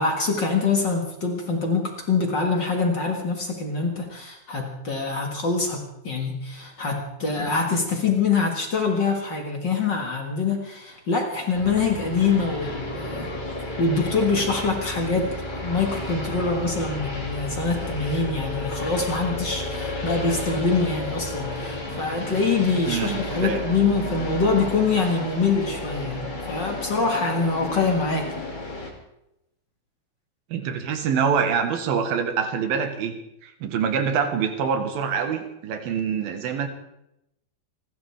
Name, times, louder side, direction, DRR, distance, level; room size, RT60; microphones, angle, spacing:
voice 1, 0.0-13.3 13.8-28.3, left 4 dB, 40° left, 1 dB, 1.9 m, -24 dB
sound 1, 11.5-28.9, left 2 dB, 15° left, 1.9 m, -32 dB
voice 2, 22.9-23.6 30.5-33.2 33.4-36.7, right 6 dB, 85° right, 6 dB, 3.3 m, -25 dB
29.0 x 12.5 x 3.5 m, 0.84 s
omnidirectional pair, 4.2 m